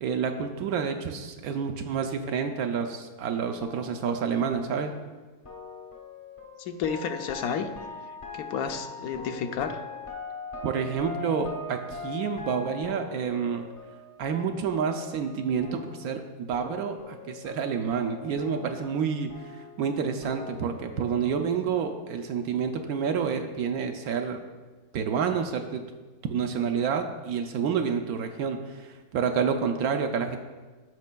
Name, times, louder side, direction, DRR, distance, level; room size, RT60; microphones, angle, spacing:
voice 1, 0.0-4.9 10.6-13.6 14.2-24.4 24.9-25.8 26.2-30.4, right 6 dB, 75° right, 5 dB, 1.0 m, -29 dB
sound 1, 3.6-16.3 16.5-21.3, left 4 dB, 30° left, 0.6 m, -42 dB
voice 2, 6.6-7.7 8.3-9.8, left 6 dB, 75° left, 7 dB, 1.0 m, -31 dB
14.5 x 5.2 x 2.2 m, 1.3 s
omnidirectional pair, 1.6 m